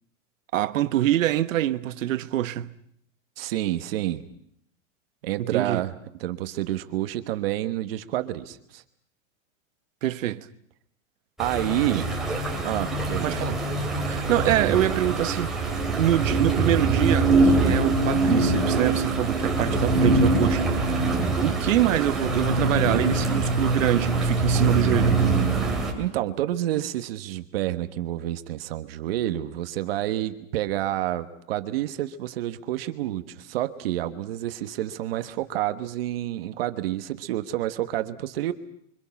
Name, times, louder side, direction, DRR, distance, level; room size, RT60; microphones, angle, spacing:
voice 1, 0.5-2.7 5.4-5.8 10.0-10.5 11.9-12.0 13.2-13.6 14.1-15.6 16.0-25.2, right 13 dB, 80° right, 1.3 m, -25 dB
voice 2, 3.4-4.2 5.2-5.9 6.2-8.8 11.4-12.0 12.6-13.4 25.9-38.5, right 14 dB, 50° right, 1.4 m, -29 dB
sound 1, 11.4-25.9, right 3 dB, ahead, 3.0 m, -23 dB
29.5 x 25.0 x 5.9 m
supercardioid pair, 175°, 38 cm